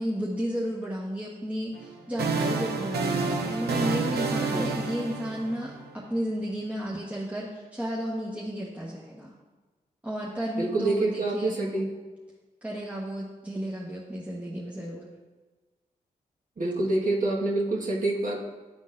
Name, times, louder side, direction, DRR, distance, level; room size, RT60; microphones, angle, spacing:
voice 1, 0.0-9.3 10.0-11.9 12.6-15.0, equal, 10° right, -6 dB, 1.2 m, -33 dB
sound 1, 1.8-6.0, right 4 dB, 65° right, 0.8 m, -29 dB
voice 2, 10.6-11.8 16.6-18.4, right 2 dB, 50° right, -3 dB, 1.5 m, -26 dB
10.5 x 3.7 x 2.5 m, 1.3 s
supercardioid pair, 40°, 18 cm